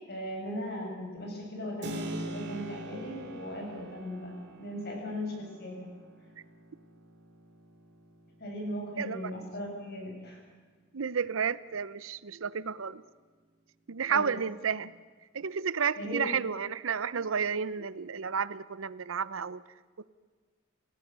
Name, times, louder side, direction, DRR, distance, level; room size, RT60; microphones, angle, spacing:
voice 1, 0.1-4.3 4.6-5.9 8.4-10.4 14.1-14.3 16.0-16.3, equal, 50° left, 0 dB, 7.6 m, -38 dB
Keyboard (musical), 1.8-10.4, right 1 dB, 60° right, 2.6 m, -45 dB
voice 2, 9.0-9.3 10.9-13.0 13.9-14.9 15.3-19.6, right 6 dB, 75° right, 17 dB, 0.7 m, -31 dB
28.5 x 18.0 x 6.8 m, 1.5 s
head